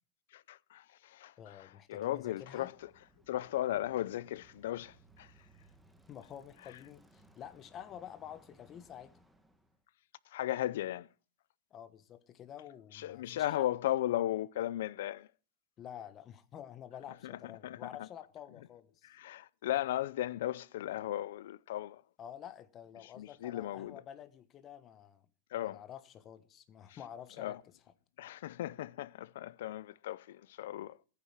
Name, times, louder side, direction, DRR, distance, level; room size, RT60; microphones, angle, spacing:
voice 1, 0.3-2.9 3.3-5.5 10.3-11.1 12.9-15.3 17.2-18.1 19.0-22.0 23.0-24.0 25.5-25.8 27.4-27.6 28.2-31.0, left 13 dB, 75° left, 0.5 m, -36 dB
voice 2, 1.4-2.7 6.1-9.1 11.7-13.7 15.8-19.1 22.2-25.3 25.6-27.6, left 10 dB, 30° left, 1.2 m, -49 dB
Bicycle, 2.3-9.8, right 1 dB, 5° right, 1.4 m, -64 dB
14.5 x 9.6 x 6.1 m
supercardioid pair, 145°, 0 cm